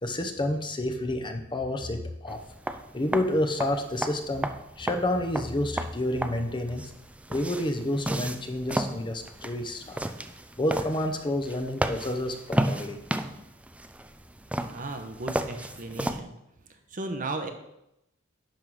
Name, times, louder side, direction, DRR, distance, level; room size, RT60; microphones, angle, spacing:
voice 1, 0.0-2.4 2.9-4.5 4.8-6.8 7.3-10.0 10.6-13.0, left 1 dB, 25° left, 6 dB, 0.7 m, -29 dB
sound 1, 2.3-16.2, right 1 dB, 5° right, 0.4 m, -33 dB
voice 2, 14.6-16.3 16.9-17.5, right 2 dB, 40° right, 6 dB, 1.0 m, -35 dB
10.5 x 3.7 x 6.2 m, 0.84 s
head